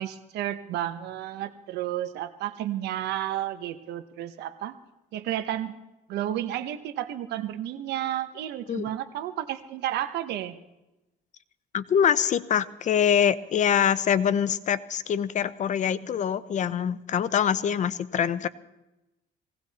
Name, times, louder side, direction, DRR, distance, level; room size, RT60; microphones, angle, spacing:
voice 1, 0.0-4.8 5.1-5.7 6.1-10.6, right 12 dB, 80° right, 11 dB, 1.0 m, -32 dB
voice 2, 11.7-18.5, left 8 dB, 45° left, 15 dB, 0.8 m, -24 dB
20.0 x 17.5 x 4.2 m, 0.97 s
cardioid pair, 110°, 17 cm